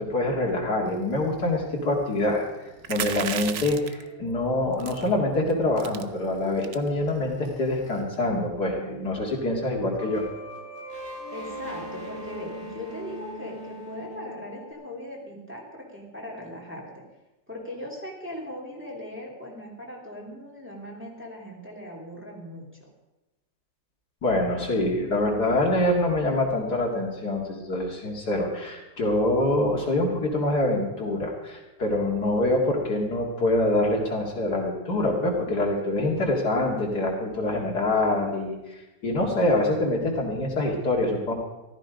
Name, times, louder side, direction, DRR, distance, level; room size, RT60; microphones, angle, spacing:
voice 1, 0.0-10.2 24.2-41.3, left 1 dB, 60° left, -1 dB, 2.8 m, -25 dB
sound 1, 0.8-8.0 8.3-14.7, equal, 35° right, 2.4 m, -43 dB
sound 2, 2.8-4.0 4.8-5.1 5.5-5.6 5.8-6.0 6.6-6.9, right 8 dB, 80° right, 0.5 m, -32 dB
voice 2, 11.3-17.0 17.5-22.6, left 1 dB, 5° right, -3 dB, 2.9 m, -39 dB
15.0 x 13.0 x 5.1 m, 1.0 s
omnidirectional pair, 2.0 m